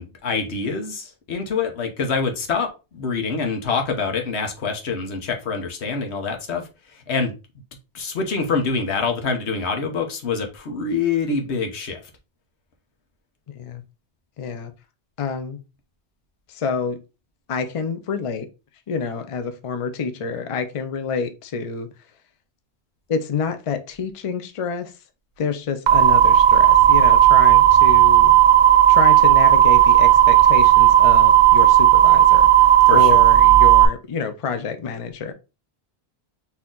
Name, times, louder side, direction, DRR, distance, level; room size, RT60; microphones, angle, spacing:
voice 1, 0.0-6.7 7.1-7.3 7.9-12.0 32.9-33.2, left 4 dB, 90° left, 1.2 m, -25 dB
voice 2, 13.5-13.8 14.4-14.7 15.2-15.6 16.5-17.0 17.5-18.5 18.9-21.9 23.1-24.9 25.4-28.3 28.9-35.3, left 5 dB, 40° left, 0.5 m, -28 dB
sound 1, 25.9-33.8, right 12 dB, 50° right, 0.7 m, -13 dB
4.2 x 2.8 x 3.7 m
omnidirectional pair, 1.1 m